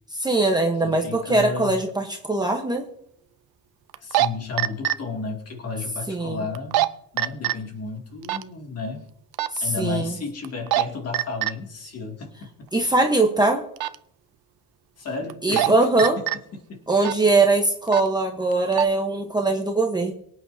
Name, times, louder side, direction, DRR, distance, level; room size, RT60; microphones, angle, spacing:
voice 1, 0.2-2.9 6.1-6.4 9.5-10.2 12.7-13.6 15.4-16.2 16.9-20.1, right 2 dB, 10° right, 2 dB, 1.0 m, -21 dB
voice 2, 0.8-1.8 4.0-6.8 7.1-9.0 9.6-12.5 15.0-16.1 16.7-16.8, left 4 dB, 40° left, 1 dB, 2.4 m, -33 dB
sound 1, 1.9-2.0 3.9-4.3 4.6-5.0 6.6-6.9 7.2-7.5 8.2-8.4 9.3-9.6 10.4-10.8 11.1-11.5 13.8-14.0 15.3-15.7 16.0-16.4 17.0-17.2 17.9-18.1 18.5-18.9, right 15 dB, 90° right, 0.6 m, -22 dB
24.0 x 8.9 x 2.7 m, 0.71 s
cardioid pair, 180°, 36 cm